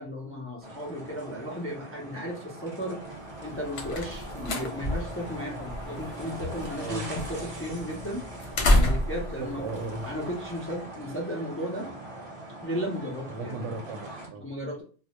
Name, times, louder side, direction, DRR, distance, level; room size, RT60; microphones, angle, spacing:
voice 1, 0.0-3.0 3.4-8.3 8.6-9.6 10.0-11.9 12.6-13.7 14.4-14.8, equal, 20° left, -2 dB, 0.3 m, -35 dB
sound 1, 0.6-14.3, right 1 dB, 35° right, 0.7 m, -42 dB
sound 2, 3.3-10.7, left 1 dB, 70° left, 0.8 m, -30 dB
voice 2, 9.4-10.1 13.3-14.5, right 3 dB, 85° right, 6 dB, 0.9 m, -36 dB
2.2 x 2.0 x 2.8 m, 0.40 s
omnidirectional pair, 1.2 m